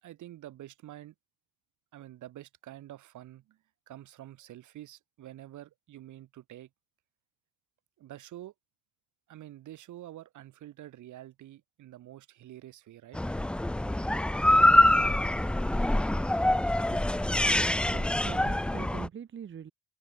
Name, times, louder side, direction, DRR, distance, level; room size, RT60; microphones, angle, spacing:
voice 1, 0.0-1.2 1.9-6.7 8.0-8.5 9.3-13.2, right 13 dB, 85° right, 5.2 m, -47 dB
sound 1, 13.1-19.1, left 1 dB, 5° left, 0.3 m, -25 dB
voice 2, 17.8-19.7, right 8 dB, 40° right, 1.4 m, -43 dB
open air
cardioid pair, 130°, 29 cm